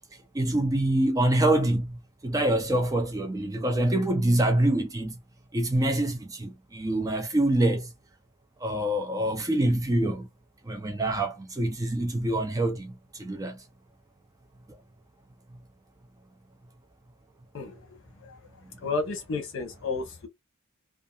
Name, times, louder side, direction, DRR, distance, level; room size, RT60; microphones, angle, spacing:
voice 1, 0.3-5.2 5.5-7.9 8.6-10.3 10.6-13.6 14.7-14.8, right 1 dB, 15° right, 0.4 m, -25 dB
voice 2, 18.8-20.3, left 3 dB, 60° left, 0.9 m, -31 dB
2.6 x 2.4 x 2.3 m
head